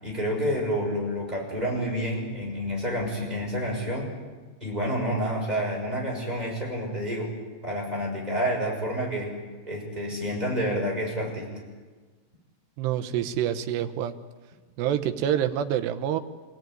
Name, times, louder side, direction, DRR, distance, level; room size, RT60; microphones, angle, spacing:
voice 1, 0.0-4.1 4.6-7.3 7.6-9.3 9.7-11.5, equal, 10° right, -2 dB, 5.9 m, -29 dB
voice 2, 12.8-14.1 14.8-16.2, right 10 dB, 75° right, 8 dB, 3.0 m, -27 dB
27.5 x 17.0 x 9.3 m, 1.4 s
omnidirectional pair, 5.2 m